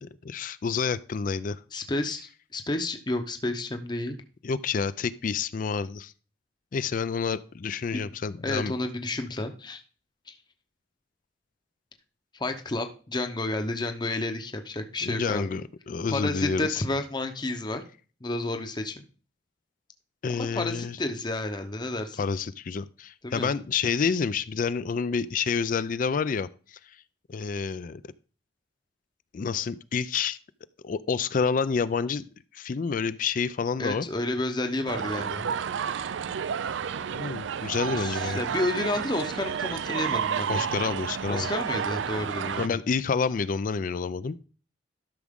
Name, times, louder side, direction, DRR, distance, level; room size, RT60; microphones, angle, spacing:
voice 1, 0.0-1.6 4.4-6.1 6.7-8.7 15.0-16.8 20.2-21.0 22.2-26.5 27.3-28.0 29.3-30.4 30.8-32.2 32.5-34.1 37.1-38.4 40.5-41.5 42.6-44.4, left 5 dB, 45° left, 15 dB, 0.4 m, -28 dB
voice 2, 1.7-4.2 7.9-8.1 8.4-9.8 10.3-10.4 12.3-15.5 16.1-17.8 18.2-19.0 20.3-22.2 23.2-23.5 33.8-35.5 37.9-40.6 41.3-42.8, left 2 dB, 25° left, 6 dB, 0.8 m, -31 dB
sound 1, 34.9-42.7, right 7 dB, 90° right, 0.4 m, -31 dB
12.0 x 6.1 x 3.6 m, 0.37 s
head